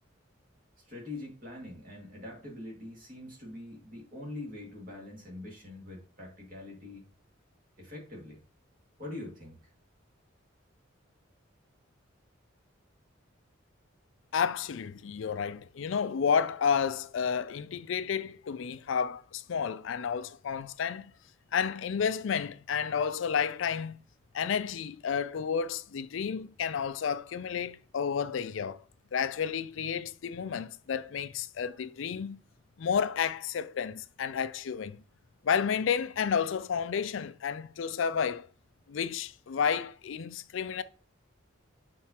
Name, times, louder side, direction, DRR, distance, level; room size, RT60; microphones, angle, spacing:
voice 1, 0.9-7.0 7.8-8.4 9.0-9.6, left 2 dB, 45° right, 2.2 m, -43 dB
voice 2, 14.3-21.1 21.5-24.0 24.3-28.8 29.1-32.4 32.8-35.0 35.4-38.5 38.9-40.8, left 7 dB, 75° left, 0.4 m, -31 dB
7.4 x 4.3 x 2.9 m
head